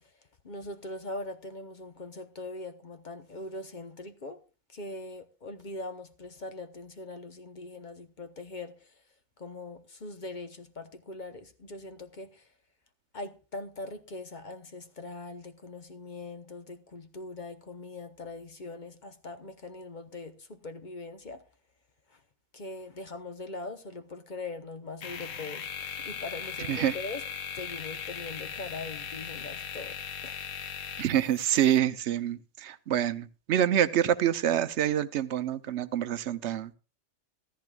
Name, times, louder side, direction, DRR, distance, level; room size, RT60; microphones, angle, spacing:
voice 1, 0.4-4.4 4.7-8.7 9.4-12.4 13.1-21.4 22.5-27.2 27.5-30.0 30.2-30.4, left 2 dB, 40° left, 1.0 m, -41 dB
sound 1, 25.0-31.8, left 7 dB, 85° left, 1.3 m, -39 dB
voice 2, 31.0-36.7, right 10 dB, 65° right, 1.0 m, -26 dB
15.0 x 13.5 x 2.4 m
omnidirectional pair, 1.3 m